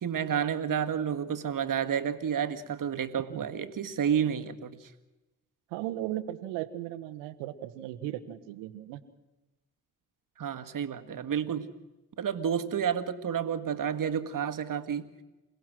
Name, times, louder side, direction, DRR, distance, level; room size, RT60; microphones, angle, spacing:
voice 1, 0.0-4.8 10.4-11.7 12.2-15.1, right 8 dB, 45° right, 9 dB, 1.9 m, -30 dB
voice 2, 5.7-9.0, right 13 dB, 75° right, 12 dB, 1.5 m, -36 dB
28.5 x 17.5 x 6.2 m, 1.0 s
hypercardioid pair, 50°, 43 cm